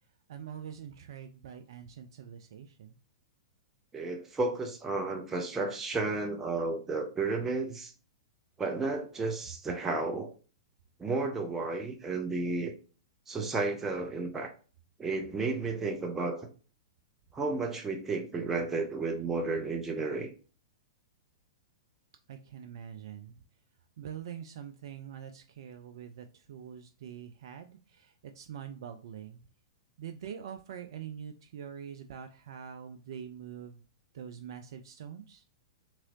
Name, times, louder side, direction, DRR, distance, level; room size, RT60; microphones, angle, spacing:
voice 1, 0.3-3.0 22.3-23.3 24.0-29.4 30.0-33.8 34.1-35.4, right 8 dB, 60° right, 7 dB, 0.4 m, -44 dB
voice 2, 3.9-7.9 8.6-10.3 11.0-12.7 13.3-14.5 15.0-16.5 17.3-20.3, right 3 dB, 15° right, 2 dB, 0.7 m, -32 dB
3.7 x 2.9 x 2.8 m, 0.37 s
figure-of-eight pair, 105°, 3 cm